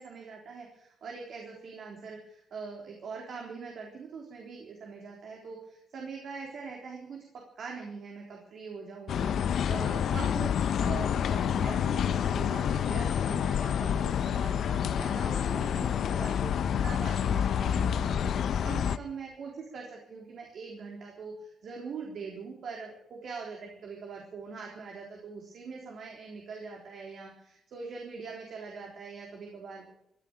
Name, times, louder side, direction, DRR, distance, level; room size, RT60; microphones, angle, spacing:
voice 1, 0.0-7.3 7.6-29.9, right 5 dB, 65° right, 0 dB, 3.8 m, -42 dB
sound 1, 9.1-19.0, left 8 dB, 65° left, 0.7 m, -28 dB
16.0 x 10.5 x 8.8 m, 0.76 s
supercardioid pair, 70°, 0 cm